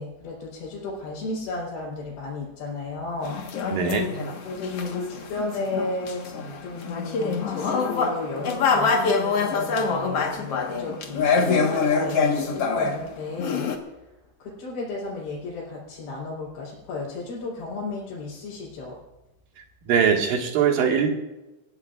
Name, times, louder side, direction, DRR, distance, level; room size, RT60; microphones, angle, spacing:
voice 1, 0.0-3.4 4.4-6.3 6.6-13.7 14.4-19.0, left 3 dB, 80° left, -7 dB, 6.3 m, -33 dB
sound 1, 3.2-13.0 13.4-13.8, left 4 dB, 60° left, 1.6 m, -25 dB
voice 2, 3.7-4.1 19.6-21.1, right 7 dB, 60° right, 2 dB, 3.2 m, -22 dB
27.0 x 15.5 x 2.5 m, 1.0 s
omnidirectional pair, 5.0 m